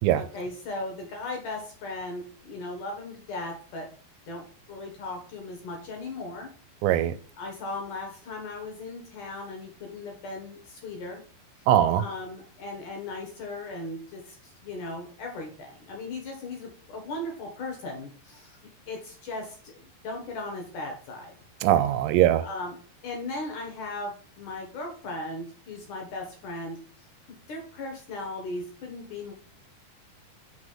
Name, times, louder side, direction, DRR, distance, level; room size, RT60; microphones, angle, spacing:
voice 1, 0.1-3.9 4.3-6.6 6.8-7.0 7.4-11.2 12.0-18.6 18.9-21.4 22.4-22.8 23.0-26.8 27.3-29.3, left 2 dB, 60° left, 2.4 m, -37 dB
voice 2, 6.8-7.1 11.7-12.0 21.6-22.4, right 12 dB, 85° right, 2.8 m, -21 dB
6.1 x 5.1 x 5.6 m
omnidirectional pair, 5.1 m